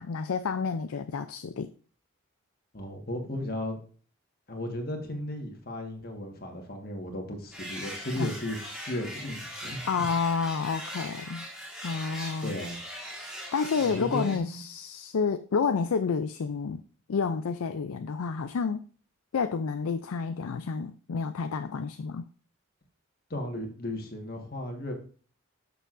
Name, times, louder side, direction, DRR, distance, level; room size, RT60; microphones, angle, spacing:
voice 1, 0.0-1.7 8.2-8.3 9.9-11.5 11.8-12.6 13.5-16.8 17.1-18.8 19.3-22.3, left 5 dB, 80° left, 9 dB, 0.4 m, -29 dB
voice 2, 2.7-3.8 4.5-8.6 8.9-10.0 12.4-12.8 13.8-14.6 23.3-24.9, left 1 dB, 45° left, 3 dB, 1.6 m, -35 dB
sound 1, 7.5-14.4, equal, 5° right, 1.6 m, -40 dB
12.0 x 6.8 x 2.6 m, 0.42 s
head